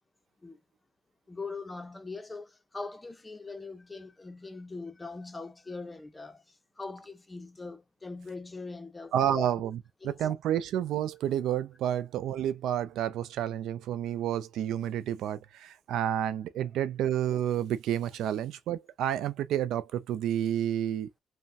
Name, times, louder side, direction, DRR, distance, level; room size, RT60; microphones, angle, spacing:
voice 1, 1.3-9.5 10.0-10.3, left 3 dB, 20° left, 0.6 m, -41 dB
voice 2, 9.1-21.2, right 10 dB, 85° right, 0.3 m, -30 dB
3.2 x 2.1 x 2.6 m
cardioid pair, 90°, 0 cm